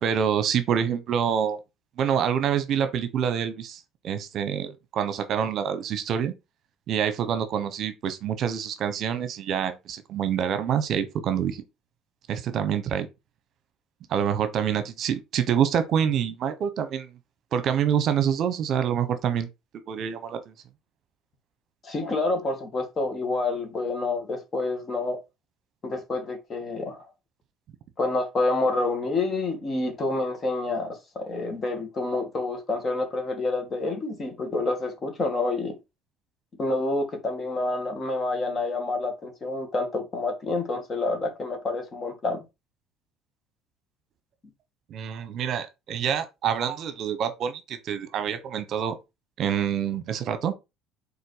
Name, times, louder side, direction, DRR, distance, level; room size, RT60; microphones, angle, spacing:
voice 1, 0.0-1.6 2.0-6.3 6.9-11.6 12.3-13.1 14.1-17.1 17.5-19.5 19.9-20.5 44.9-49.0 49.4-50.5, right 8 dB, 50° right, 1.0 m, -26 dB
voice 2, 21.8-25.2 25.8-27.1 28.0-35.8 36.6-42.4, left 2 dB, 30° left, 2.1 m, -28 dB
5.6 x 4.1 x 4.9 m
cardioid pair, 115°, 0 cm